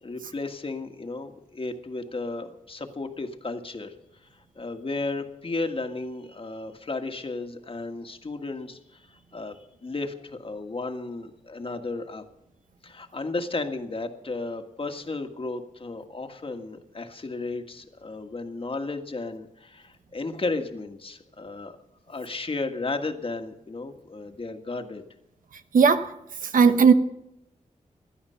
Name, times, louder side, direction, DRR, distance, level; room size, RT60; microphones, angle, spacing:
voice 1, 0.0-3.9 4.2-4.3 4.5-12.2 12.8-21.8 22.1-25.1, left 3 dB, 40° left, 1.7 m, -34 dB
voice 2, 25.7-26.1 26.5-26.9, right 5 dB, 90° right, 1.1 m, -16 dB
16.5 x 12.0 x 5.7 m
wide cardioid pair, 80°, 14 cm